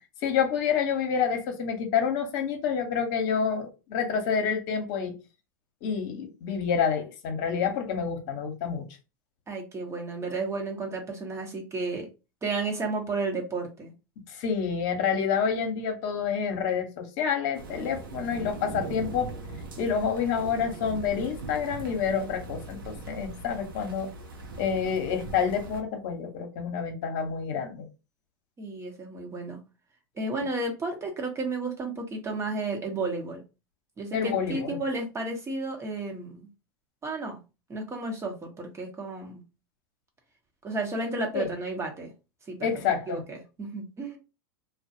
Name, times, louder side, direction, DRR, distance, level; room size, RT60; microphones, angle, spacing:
voice 1, 0.2-5.1 5.8-8.8 14.3-19.3 19.8-24.1 24.6-27.8 34.1-34.8 41.3-41.5 42.6-43.2, left 7 dB, 60° left, 0.8 m, -28 dB
voice 2, 9.5-12.1 12.4-13.9 28.6-29.6 30.1-33.4 34.0-36.5 37.0-37.4 37.7-39.4 40.6-42.1 42.5-42.7 43.1-44.2, right 3 dB, 25° right, 0.9 m, -32 dB
sound 1, 17.5-25.8, right 3 dB, 85° right, 0.6 m, -40 dB
2.3 x 2.1 x 2.7 m
hypercardioid pair, 95°, 11 cm